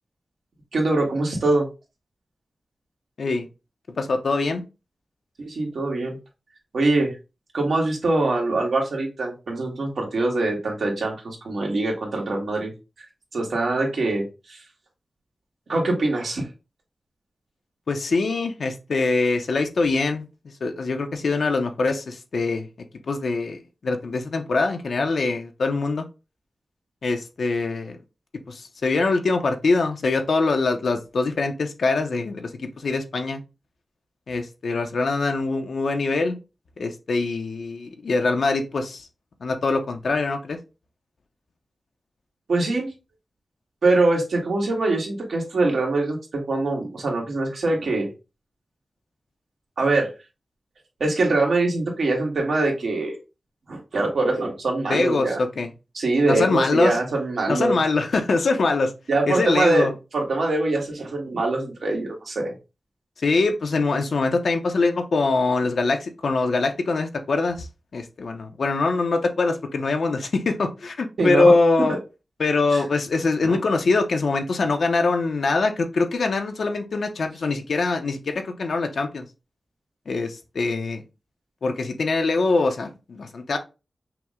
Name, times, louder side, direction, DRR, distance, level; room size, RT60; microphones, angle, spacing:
voice 1, 0.7-1.7 5.4-6.2 6.7-7.1 7.5-12.7 13.3-14.2 14.5-14.6 15.7-16.4 42.5-42.9 43.8-48.1 49.8-50.1 51.0-53.2 53.7-55.4 55.9-57.8 59.1-59.9 60.1-62.5 71.2-71.5 72.7-72.8 73.5-73.6, right 2 dB, 80° right, 1.5 m, -23 dB
voice 2, 4.0-4.6 17.9-20.2 20.6-22.7 23.1-26.1 27.0-28.0 28.5-33.4 34.3-36.4 36.8-39.1 39.4-40.6 54.9-55.7 56.3-57.0 57.5-58.9 59.3-59.9 63.2-67.7 67.9-72.0 72.4-79.3 80.1-81.0 81.6-83.6, left 3 dB, 75° left, 0.7 m, -23 dB
5.8 x 2.1 x 3.6 m
wide cardioid pair, 130°, 0 cm